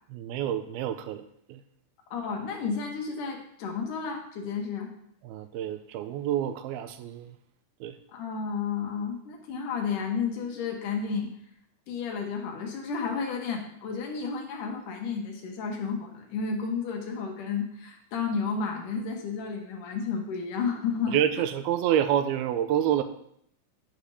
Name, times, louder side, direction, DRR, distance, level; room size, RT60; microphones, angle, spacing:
voice 1, 0.1-1.6 5.2-7.4 7.8-8.0 21.1-23.0, right 10 dB, 80° right, 9 dB, 2.4 m, -28 dB
voice 2, 2.1-4.9 8.1-11.3 11.9-21.2, left 5 dB, 65° left, 2 dB, 2.3 m, -32 dB
10.5 x 5.1 x 5.5 m, 0.69 s
omnidirectional pair, 4.8 m